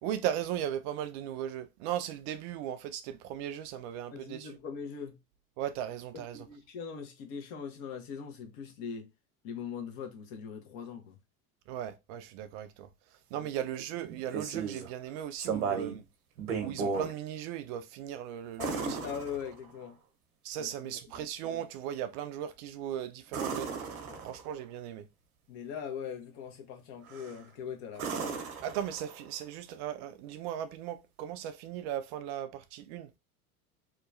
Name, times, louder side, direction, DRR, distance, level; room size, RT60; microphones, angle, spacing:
voice 1, 0.0-4.5 5.6-6.5 11.7-12.9 13.3-16.0 16.6-19.0 20.4-23.8 24.2-25.1 28.6-33.1, right 10 dB, 50° right, 0.4 m, -37 dB
voice 2, 4.1-5.2 6.1-9.1 9.4-11.2 13.3-13.5 18.6-20.0 20.6-21.2 24.1-24.2 25.5-28.5, left 6 dB, 50° left, 0.9 m, -41 dB
sound 1, 14.0-14.9 15.4-16.0 16.4-17.1 18.6-19.9 23.3-24.6 27.1-27.4 27.9-29.3 31.5-31.6, right 5 dB, 75° right, 0.8 m, -35 dB
2.8 x 2.3 x 2.4 m
hypercardioid pair, 75°, 45 cm